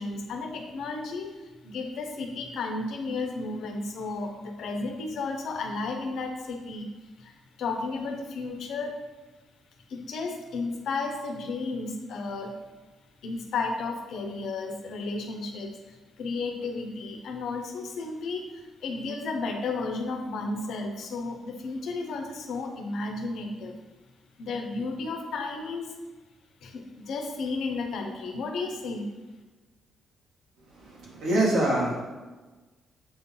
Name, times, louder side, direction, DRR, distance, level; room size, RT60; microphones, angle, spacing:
voice 1, 0.0-6.9 7.2-9.0 9.9-12.5 13.2-23.8 24.4-25.9 26.6-29.1, left 3 dB, 70° left, 4 dB, 0.9 m, -33 dB
voice 2, 30.7-32.0, right 1 dB, 75° right, -4 dB, 2.0 m, -25 dB
7.5 x 2.7 x 5.4 m, 1.3 s
cardioid pair, 90°, 0 cm